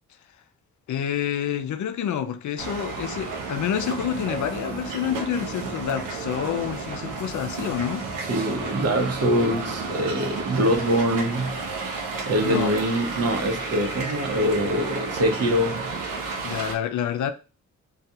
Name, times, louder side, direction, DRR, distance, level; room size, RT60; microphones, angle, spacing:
voice 1, 0.9-8.1 12.4-12.7 16.4-17.3, left 9 dB, 70° left, 0.5 m, -28 dB
sound 1, 2.6-16.7, right 4 dB, 85° right, 0.7 m, -32 dB
voice 2, 8.3-11.6 12.3-15.9, equal, 50° right, 0.8 m, -24 dB
2.3 x 2.3 x 2.8 m
cardioid pair, 70°, 31 cm